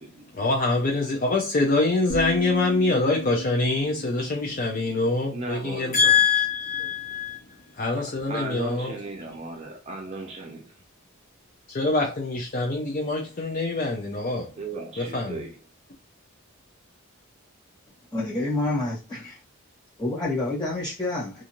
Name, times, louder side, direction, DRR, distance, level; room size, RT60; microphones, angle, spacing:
voice 1, 0.3-8.9 11.7-14.6 15.0-15.4, left 3 dB, 40° left, 0.4 m, -24 dB
sound 1, 2.1-6.0, right 3 dB, 85° left, 1.0 m, -37 dB
voice 2, 5.3-6.3 8.3-10.8 14.6-15.6, right 3 dB, 30° right, 0.4 m, -36 dB
voice 3, 18.1-19.4 20.0-21.4, left 2 dB, 20° left, 1.3 m, -28 dB
2.5 x 2.5 x 2.9 m
head